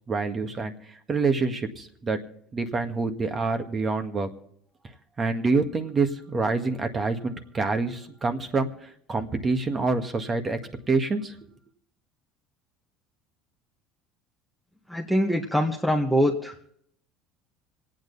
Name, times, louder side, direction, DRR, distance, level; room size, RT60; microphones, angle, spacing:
voice 1, 0.1-0.7 1.1-2.2 2.5-4.3 5.2-10.6 10.9-11.4, right 3 dB, 30° right, 7 dB, 1.8 m, -26 dB
voice 2, 14.9-16.6, equal, ahead, -1 dB, 1.7 m, -23 dB
26.0 x 9.0 x 4.1 m, 0.68 s
supercardioid pair, 90°, 0 cm